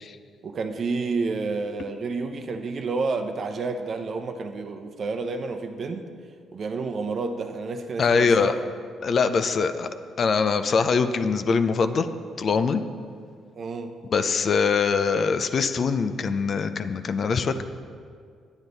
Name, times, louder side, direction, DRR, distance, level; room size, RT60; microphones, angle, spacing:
voice 1, 0.4-6.1 6.5-8.6 13.5-13.9, right 4 dB, 50° right, 6 dB, 0.7 m, -30 dB
voice 2, 8.0-8.6 9.0-9.9 10.2-12.1 12.4-12.8 14.1-17.6, left 5 dB, 50° left, 10 dB, 0.5 m, -23 dB
9.6 x 9.0 x 4.0 m, 2.2 s
cardioid pair, 90°, 0 cm